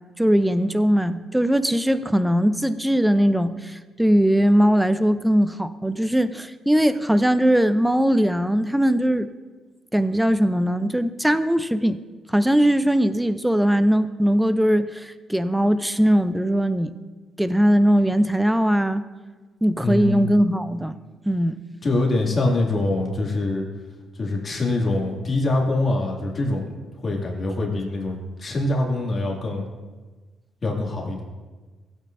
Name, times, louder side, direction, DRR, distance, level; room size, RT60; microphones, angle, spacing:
voice 1, 0.2-9.3 9.9-12.0 12.3-16.9 17.4-19.0 19.6-21.0 21.3-21.6, equal, 5° right, 12 dB, 0.5 m, -20 dB
voice 2, 19.8-20.3 21.8-23.7 24.1-29.6 30.6-31.2, left 2 dB, 40° left, -1 dB, 2.2 m, -24 dB
16.0 x 8.7 x 2.6 m, 1.3 s
cardioid pair, 90°, 0 cm